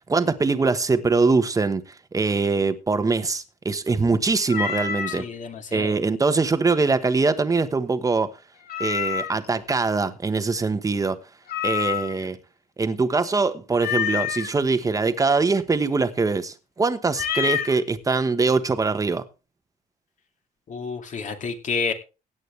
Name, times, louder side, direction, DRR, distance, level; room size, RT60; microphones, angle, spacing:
voice 1, 0.1-1.8 2.1-5.2 5.7-8.3 8.8-11.2 11.6-12.4 12.8-19.2, right 4 dB, 20° right, 1.2 m, -22 dB
Meow, 4.5-5.2 8.7-9.5 11.5-12.3 13.8-14.5 17.1-17.8, left 8 dB, 65° left, 2.2 m, -27 dB
voice 2, 5.1-6.0 20.7-21.9, left 5 dB, 50° left, 2.5 m, -30 dB
16.5 x 8.9 x 3.3 m
cardioid pair, 110°, 17 cm